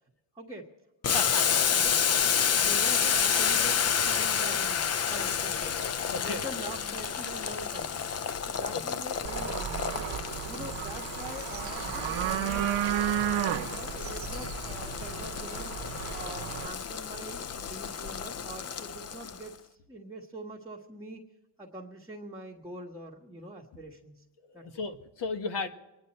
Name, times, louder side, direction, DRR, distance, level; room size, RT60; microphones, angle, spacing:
voice 1, 0.3-0.7 1.7-5.8 6.2-8.1 8.5-12.8 13.2-15.7 16.1-21.2 21.6-24.2 24.5-24.7, right 1 dB, 10° right, -3 dB, 1.6 m, -44 dB
Boiling, 1.0-19.5, left 7 dB, 35° left, 0.5 m, -30 dB
voice 2, 1.1-1.6 6.1-6.4 8.7-9.0 14.7-14.8 24.5-25.7, left 4 dB, 65° left, 6 dB, 1.6 m, -35 dB
sound 1, 9.2-16.7, right 11 dB, 90° right, 0.9 m, -33 dB
25.0 x 10.5 x 4.3 m, 1.1 s
cardioid pair, 130°, 45 cm